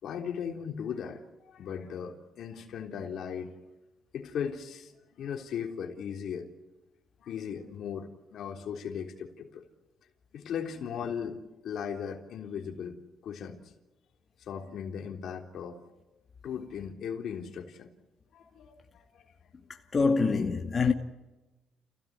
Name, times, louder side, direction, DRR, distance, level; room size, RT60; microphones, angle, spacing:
voice 1, 0.0-3.6 4.1-6.5 7.2-9.6 10.3-13.6 14.5-15.8 16.4-17.9 18.3-19.2, left 7 dB, 70° left, 3.5 m, -38 dB
voice 2, 19.9-20.9, left 4 dB, 35° left, 2.3 m, -25 dB
30.0 x 16.5 x 9.7 m
cardioid pair, 90°, 0 cm